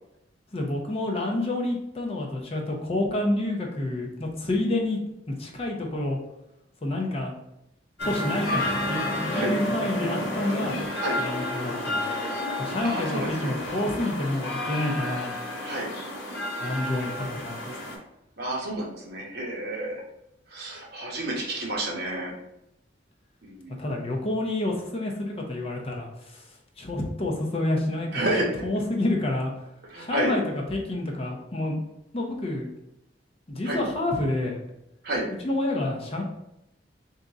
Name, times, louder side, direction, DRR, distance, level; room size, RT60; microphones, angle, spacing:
voice 1, 0.5-5.0 5.3-6.2 6.8-7.3 8.0-10.8 11.2-12.2 12.6-15.3 16.6-17.8 23.7-26.4 26.8-28.2 28.6-29.5 30.0-30.4 30.7-31.8 32.1-32.7 33.5-34.6 35.4-36.2, left 1 dB, 35° left, 0 dB, 0.7 m, -28 dB
sound 1, 8.0-18.0, left 1 dB, 70° left, 1.4 m, -31 dB
voice 2, 12.0-12.5 12.8-13.5 15.6-15.9 18.4-20.0 20.5-22.3 23.4-23.9 28.1-28.5 29.9-30.4 33.6-33.8 35.0-35.3, right 1 dB, 60° right, -2 dB, 1.0 m, -30 dB
3.8 x 2.7 x 3.5 m, 0.83 s
head